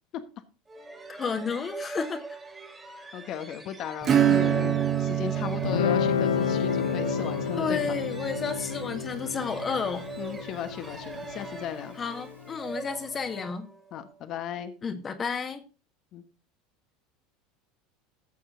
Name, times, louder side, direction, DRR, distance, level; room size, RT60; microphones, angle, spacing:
sound 1, 0.7-14.2, right 3 dB, 15° right, 2.8 m, -42 dB
voice 1, 1.1-2.2 7.6-10.1 12.0-13.7 14.8-15.6, left 5 dB, 30° left, 1.5 m, -31 dB
voice 2, 3.1-7.9 10.2-12.0 13.9-14.7 16.1-16.2, left 10 dB, 50° left, 1.2 m, -36 dB
Acoustic guitar / Strum, 4.0-10.3, right 9 dB, 40° right, 2.1 m, -28 dB
Guitar, 5.6-12.8, left 9 dB, 85° left, 0.6 m, -31 dB
14.5 x 6.7 x 3.7 m
hypercardioid pair, 80°, 0 cm